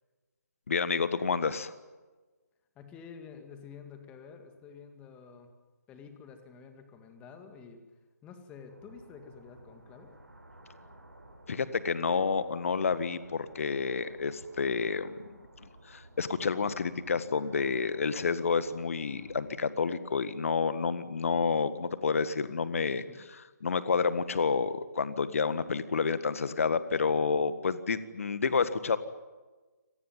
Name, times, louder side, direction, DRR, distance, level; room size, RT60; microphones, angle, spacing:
voice 1, 0.7-1.7 11.5-29.0, left 5 dB, 50° left, 14 dB, 1.7 m, -29 dB
voice 2, 2.8-5.5 5.9-7.8 8.2-10.1 23.0-23.3, left 6 dB, 15° left, 7 dB, 2.2 m, -49 dB
sound 1, 8.7-19.6, right 1 dB, 85° right, 6.2 m, -55 dB
26.0 x 19.0 x 9.3 m, 1.3 s
figure-of-eight pair, 145°, 9 cm